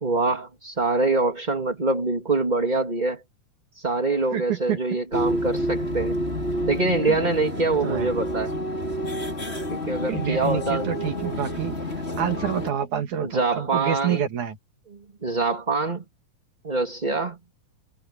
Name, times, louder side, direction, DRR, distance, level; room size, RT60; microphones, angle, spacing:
voice 1, 0.0-3.2 3.7-6.1 6.7-8.5 9.7-10.9 13.2-14.2 15.2-16.0 16.6-17.4, right 3 dB, 15° right, 2.2 m, -24 dB
voice 2, 4.3-4.8 7.1-7.2 7.8-8.1 10.1-11.8 12.2-14.6, right 9 dB, 65° right, 3.5 m, -27 dB
sound 1, 5.1-12.7, equal, 15° left, 5.1 m, -29 dB
omnidirectional pair, 3.8 m